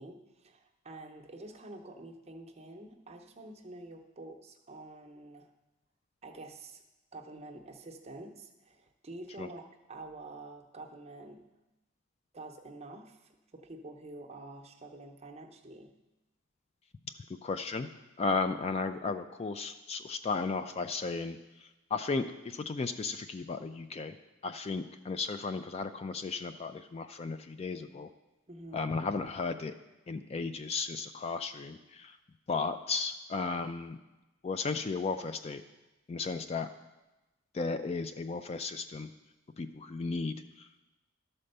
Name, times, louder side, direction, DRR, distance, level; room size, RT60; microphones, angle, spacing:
voice 1, 0.0-5.5 6.2-6.8 7.1-9.6 9.9-11.4 12.3-15.9 28.5-28.8, right 2 dB, 30° right, 2 dB, 0.8 m, -48 dB
voice 2, 17.4-17.9 18.2-21.4 21.9-24.1 24.4-28.1 28.7-29.7 30.1-32.1 32.5-34.0 34.4-35.6 36.1-36.7 37.5-39.1 39.6-40.4, left 4 dB, 30° left, 9 dB, 0.3 m, -34 dB
12.5 x 4.3 x 6.6 m, 1.1 s
head